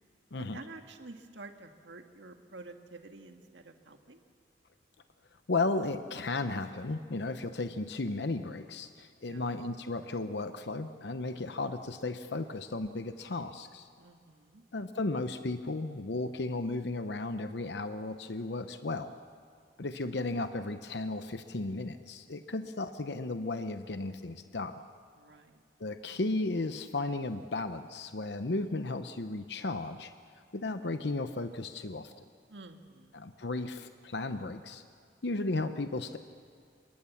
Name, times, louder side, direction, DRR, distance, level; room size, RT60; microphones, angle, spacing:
voice 1, 0.4-4.2 9.2-9.5 14.0-14.6 25.2-25.6 32.5-33.1, right 3 dB, 85° right, 5 dB, 1.8 m, -49 dB
voice 2, 5.5-13.9 14.7-19.1 19.8-24.8 25.8-30.1 30.5-32.1 33.1-34.8 35.2-36.2, left 2 dB, 70° left, 9 dB, 0.8 m, -34 dB
28.0 x 23.5 x 7.2 m, 2.3 s
head